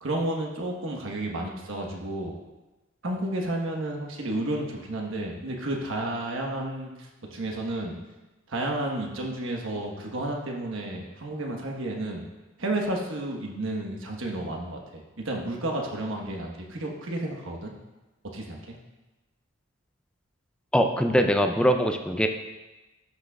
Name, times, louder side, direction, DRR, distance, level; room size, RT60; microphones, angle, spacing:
voice 1, 0.0-2.3 3.0-7.9 8.5-12.2 12.6-17.7 18.3-18.7, right 1 dB, 70° right, 0 dB, 1.2 m, -31 dB
voice 2, 20.7-22.3, equal, 5° left, 5 dB, 0.4 m, -22 dB
11.5 x 6.2 x 2.3 m, 1.1 s
head